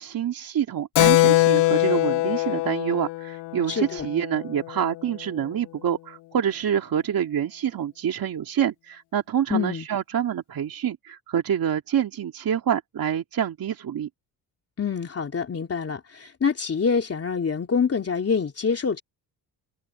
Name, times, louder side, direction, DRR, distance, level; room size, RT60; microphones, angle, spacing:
voice 1, 0.0-14.1, right 9 dB, 50° right, 2.4 m, -27 dB
Keyboard (musical), 1.0-5.0, left 19 dB, 65° left, 0.5 m, -22 dB
voice 2, 3.7-4.1 9.5-9.8 14.8-19.0, left 6 dB, 30° left, 3.1 m, -26 dB
cardioid pair, 105°, 46 cm